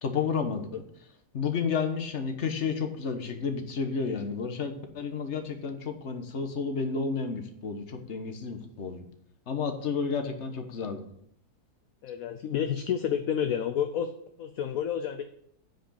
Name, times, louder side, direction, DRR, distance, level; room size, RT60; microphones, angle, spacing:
voice 1, 0.0-0.8 1.3-9.0 9.5-11.0, left 5 dB, 50° left, 6 dB, 1.4 m, -31 dB
voice 2, 12.0-14.1 14.4-15.2, left 9 dB, 65° left, 8 dB, 1.0 m, -29 dB
9.2 x 5.1 x 6.8 m, 0.70 s
omnidirectional pair, 1.7 m